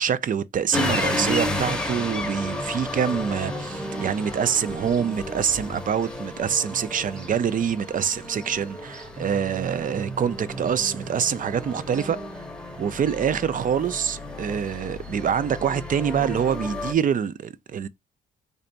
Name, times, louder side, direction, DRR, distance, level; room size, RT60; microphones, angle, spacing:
voice 1, 0.0-12.2 12.8-17.9, right 8 dB, 45° right, 0.5 m, -25 dB
sound 1, 0.7-16.9, left 1 dB, 5° left, 0.9 m, -32 dB
3.4 x 2.6 x 3.9 m
cardioid pair, 90°, 20 cm